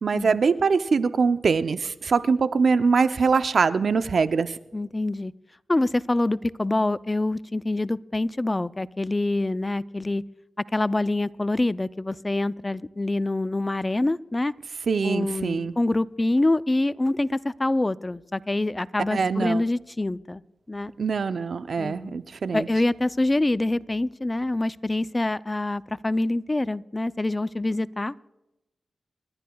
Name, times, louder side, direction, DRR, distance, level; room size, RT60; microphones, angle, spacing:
voice 1, 0.0-4.6 14.9-15.7 19.1-19.6 21.0-22.7, right 5 dB, 70° right, 12 dB, 0.5 m, -23 dB
voice 2, 4.7-5.3 5.7-10.2 10.7-14.5 15.0-20.4 20.7-20.9 21.8-22.2 22.5-28.1, left 2 dB, 25° left, 16 dB, 0.4 m, -25 dB
27.5 x 12.0 x 2.3 m, 0.95 s
cardioid pair, 50°, 0 cm